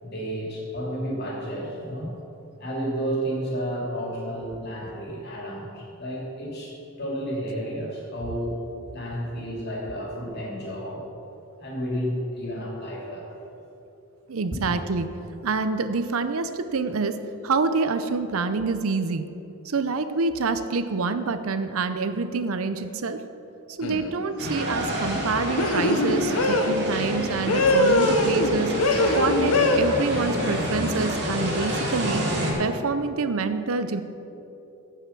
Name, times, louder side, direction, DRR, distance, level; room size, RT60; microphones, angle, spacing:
voice 1, 0.0-2.1 2.6-8.6 8.9-11.0 11.6-13.3 14.5-14.7, equal, 50° left, -3 dB, 2.9 m, -31 dB
voice 2, 14.3-15.1 15.4-17.1 17.4-19.3 19.6-23.2 23.7-28.7 29.2-32.2 32.6-34.0, right 4 dB, 70° right, 10 dB, 0.6 m, -27 dB
sound 1, 23.8-24.1 25.6-26.8 27.5-28.5 28.8-29.8, left 2 dB, 85° left, 1.0 m, -21 dB
sound 2, 24.4-32.5, equal, 50° right, 2.5 m, -28 dB
15.5 x 5.8 x 6.0 m, 3.0 s
head